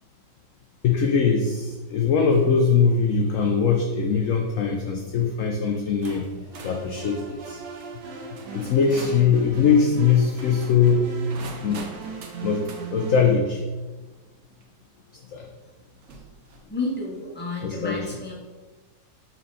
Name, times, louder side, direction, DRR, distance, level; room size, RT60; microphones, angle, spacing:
voice 1, 0.8-6.3 6.6-7.6 8.5-11.1 11.6-11.8 12.4-12.6 12.9-13.6 15.3-15.5 17.6-18.0, left 6 dB, 70° left, 3 dB, 0.7 m, -21 dB
sound 1, 2.3-2.6 3.1-3.4 4.3-4.6 5.4-5.5 6.0-9.3 10.3-12.9 14.6-14.7 16.0-16.7, right 4 dB, 60° right, 0.8 m, -45 dB
sound 2, 6.5-13.4, right 4 dB, 80° right, 1.6 m, -39 dB
voice 2, 16.7-18.3, left 3 dB, 5° left, -4 dB, 1.0 m, -31 dB
5.4 x 4.4 x 4.1 m, 1.3 s
omnidirectional pair, 2.0 m